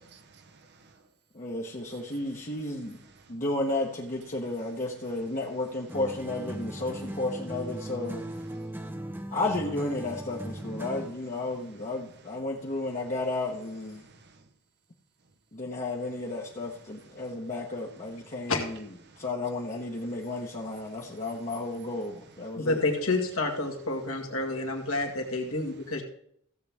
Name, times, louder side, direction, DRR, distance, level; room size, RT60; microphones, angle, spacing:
voice 1, 0.1-1.0 1.9-2.1 3.2-3.4 8.5-8.7 11.5-11.6 12.2-12.3 14.0-14.5 16.9-17.5 18.2-18.5 19.1-19.3 20.1-21.5 22.4-22.6, right 4 dB, 50° right, 0.9 m, -57 dB
voice 2, 1.3-3.0 3.3-8.3 9.3-14.1 15.5-18.9 19.2-22.8, left 2 dB, 35° left, 1.2 m, -33 dB
sound 1, 5.9-11.2, right 1 dB, 10° right, 0.8 m, -38 dB
voice 3, 22.6-26.0, left 2 dB, 70° left, 2.0 m, -29 dB
16.0 x 7.8 x 3.6 m
head